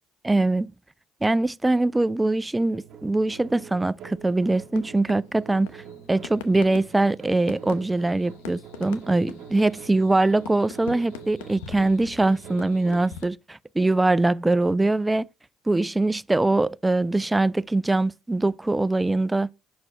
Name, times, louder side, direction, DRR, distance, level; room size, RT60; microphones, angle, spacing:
voice 1, 0.2-0.7 1.2-5.8 6.1-15.2 15.7-19.5, right 2 dB, 15° right, 0.3 m, -23 dB
sound 1, 2.7-13.1, right 7 dB, 55° right, 1.4 m, -45 dB
sound 2, 4.0-13.3, left 8 dB, 90° left, 0.7 m, -43 dB
6.0 x 4.8 x 4.1 m
supercardioid pair, 70°, 0 cm